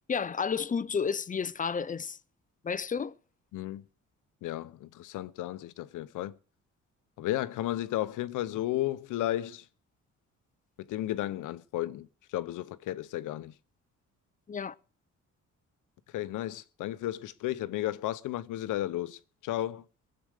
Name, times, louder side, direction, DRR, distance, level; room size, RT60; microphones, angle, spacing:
voice 1, 0.1-2.2 2.6-3.1 14.5-14.8, left 6 dB, 25° left, 0.6 m, -31 dB
voice 2, 3.5-3.8 4.4-6.4 7.2-9.6 10.9-13.5 16.1-19.8, left 14 dB, 85° left, 0.9 m, -33 dB
22.0 x 7.9 x 4.8 m
cardioid pair, 90°, 30 cm